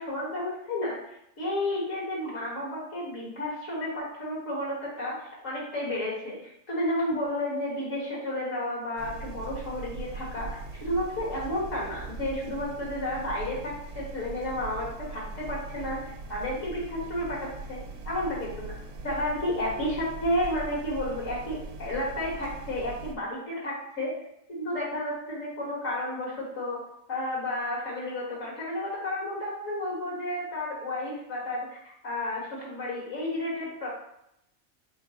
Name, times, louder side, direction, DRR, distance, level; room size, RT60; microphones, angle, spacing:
voice 1, 0.0-17.8 18.1-18.8 19.0-24.2 24.5-26.8 27.1-33.9, left 1 dB, 80° left, -5 dB, 2.0 m, -32 dB
sound 1, 9.0-23.1, right 3 dB, 70° right, 1.0 m, -40 dB
4.7 x 3.8 x 2.9 m, 0.78 s
omnidirectional pair, 1.3 m